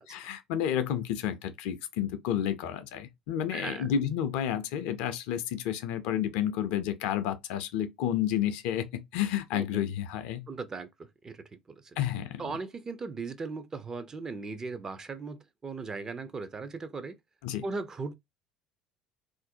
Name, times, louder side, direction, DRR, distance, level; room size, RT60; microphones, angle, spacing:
voice 1, 0.0-10.5 12.0-12.5 17.4-17.6, left 10 dB, 60° left, 0.4 m, -31 dB
voice 2, 3.5-3.9 9.5-9.8 10.5-12.0 12.4-17.2 17.6-18.1, right 4 dB, 25° right, 0.4 m, -38 dB
2.4 x 2.0 x 2.6 m
figure-of-eight pair, 60°, 2 cm